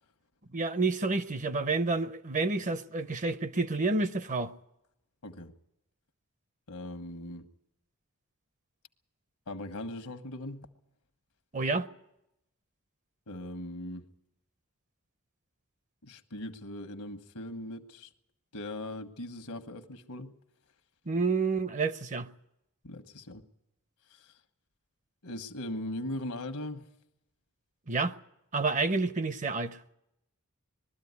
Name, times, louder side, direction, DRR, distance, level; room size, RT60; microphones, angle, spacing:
voice 1, 0.5-4.5 11.5-11.9 21.1-22.3 27.9-28.1 28.5-29.8, right 3 dB, 35° right, 0.6 m, -29 dB
voice 2, 6.7-7.5 9.5-10.7 13.3-14.0 16.0-18.1 18.5-20.3 22.8-23.5 24.1-24.3 25.2-26.9, left 1 dB, 80° left, 1.3 m, -39 dB
21.0 x 13.0 x 9.5 m
head